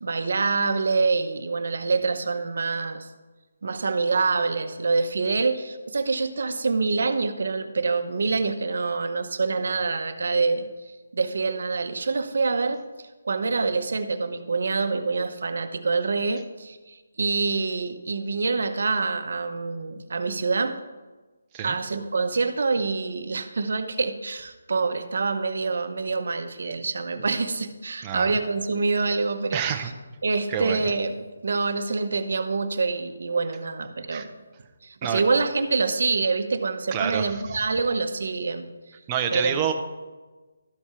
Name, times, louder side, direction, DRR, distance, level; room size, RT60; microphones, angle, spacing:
voice 1, 0.0-3.1 3.6-10.7 11.1-12.8 13.2-20.8 21.6-29.9 30.2-34.3 34.8-38.7 39.3-39.5, right 4 dB, 50° right, 8 dB, 0.7 m, -26 dB
voice 2, 29.5-29.9 30.5-30.8 34.1-34.3 35.0-35.2 36.9-37.6 39.1-39.7, right 8 dB, 10° right, 4 dB, 0.4 m, -28 dB
12.5 x 4.3 x 4.8 m, 1.2 s
hypercardioid pair, 180°, 0 cm